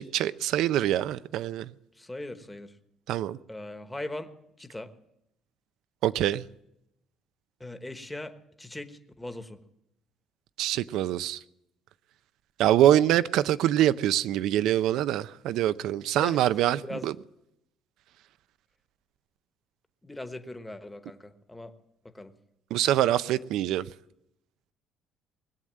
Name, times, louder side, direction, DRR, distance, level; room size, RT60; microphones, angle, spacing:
voice 1, 0.0-1.7 3.1-3.4 6.0-6.4 10.6-11.4 12.6-17.1 22.7-23.9, right 12 dB, 75° right, 0.5 m, -24 dB
voice 2, 1.9-2.8 3.5-4.3 4.6-4.9 7.6-9.6 16.2-16.5 16.8-17.3 20.0-21.7 22.1-22.3, left 1 dB, 10° left, 1.1 m, -40 dB
20.0 x 8.0 x 7.5 m
cardioid pair, 110°, 0 cm